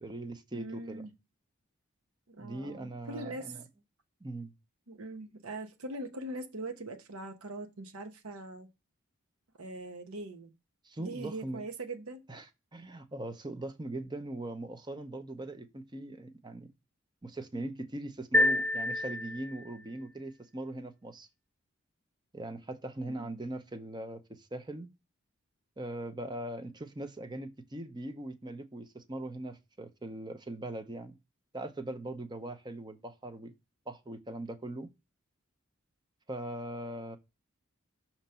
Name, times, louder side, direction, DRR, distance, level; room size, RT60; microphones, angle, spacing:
voice 1, 0.0-1.1 2.4-3.6 4.2-4.5 10.8-11.6 12.3-12.5 12.7-16.7 17.2-21.3 22.3-24.9 25.8-31.2 31.5-33.5 33.9-34.9 36.3-37.2, right 1 dB, 20° right, 0.7 m, -40 dB
voice 2, 0.5-1.1 2.3-3.6 4.9-8.7 9.6-10.5 11.0-12.3 23.0-23.4, right 2 dB, 85° right, 1.0 m, -42 dB
sound 1, 18.3-19.8, left 1 dB, 5° left, 0.3 m, -28 dB
6.4 x 3.0 x 5.5 m
head